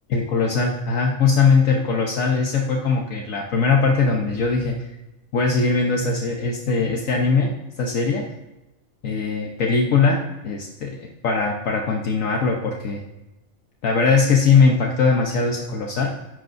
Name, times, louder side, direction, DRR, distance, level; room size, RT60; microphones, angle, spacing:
voice 1, 0.1-4.9 5.3-7.5 7.8-8.2 9.0-10.2 10.4-13.0 13.8-16.1, left 4 dB, 70° left, 0 dB, 1.3 m, -20 dB
13.5 x 11.5 x 2.6 m, 1.0 s
omnidirectional pair, 1.5 m